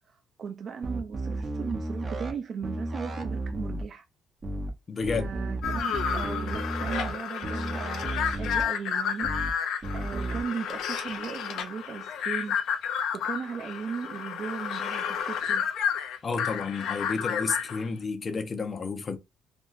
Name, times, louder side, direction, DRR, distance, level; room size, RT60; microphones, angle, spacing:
voice 1, 0.1-4.0 5.2-9.3 9.9-12.6 12.9-15.6, right 6 dB, 50° right, 0.4 m, -37 dB
sound 1, 0.8-2.3 2.6-3.8 4.4-4.7 5.0-7.1 7.4-8.6 9.2-9.5 9.8-10.4, right 2 dB, 30° right, 0.8 m, -33 dB
voice 2, 4.9-5.3 16.2-19.2, left 4 dB, 35° left, 0.8 m, -31 dB
sound 2, 5.6-17.9, left 8 dB, 75° left, 0.7 m, -31 dB
3.4 x 2.4 x 2.5 m
cardioid pair, 105°, 0 cm